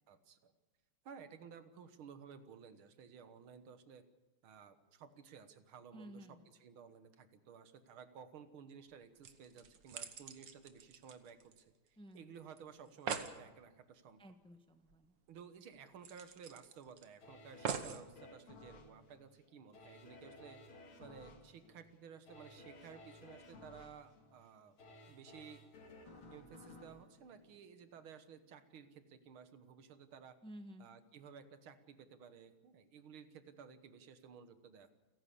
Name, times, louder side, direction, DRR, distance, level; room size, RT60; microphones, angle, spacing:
voice 1, 0.1-0.5 1.1-4.0 4.4-11.7 12.1-14.2 15.3-20.6 21.0-24.8 25.1-25.6 26.3-30.4 30.8-34.9, right 7 dB, 85° right, 11 dB, 2.1 m, -55 dB
voice 2, 5.9-6.4 12.0-12.3 14.2-15.1 30.4-30.9, equal, 5° left, 7 dB, 0.9 m, -53 dB
sound 1, 8.9-9.0 9.2-11.9 12.2-12.3 12.6-12.7 12.9-13.4 14.9-15.0 15.3-15.4 16.0-17.0 17.6-18.1 18.8-18.9, right 7 dB, 65° right, 1.9 m, -43 dB
sound 2, 17.2-28.2 28.6-28.7, left 2 dB, 90° left, 3.2 m, -58 dB
29.5 x 11.0 x 8.5 m, 1.2 s
omnidirectional pair, 2.2 m